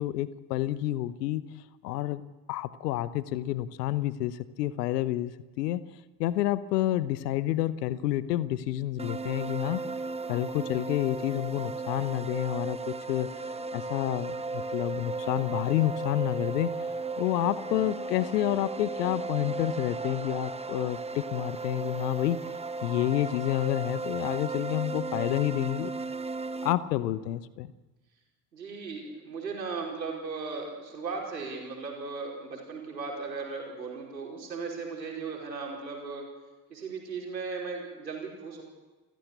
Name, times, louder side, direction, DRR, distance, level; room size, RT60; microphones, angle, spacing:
voice 1, 0.0-1.4 1.8-2.2 2.5-5.8 6.2-9.8 10.3-13.3 13.7-16.7 17.2-22.4 22.8-25.9 26.6-27.7, left 14 dB, 70° left, 17 dB, 1.0 m, -29 dB
sound 1, 9.0-26.7, right 3 dB, 10° right, 1.2 m, -35 dB
voice 2, 28.5-36.2 36.7-38.6, right 4 dB, 80° right, 0 dB, 5.1 m, -37 dB
29.0 x 15.0 x 8.2 m, 1.2 s
figure-of-eight pair, 55°, 50 cm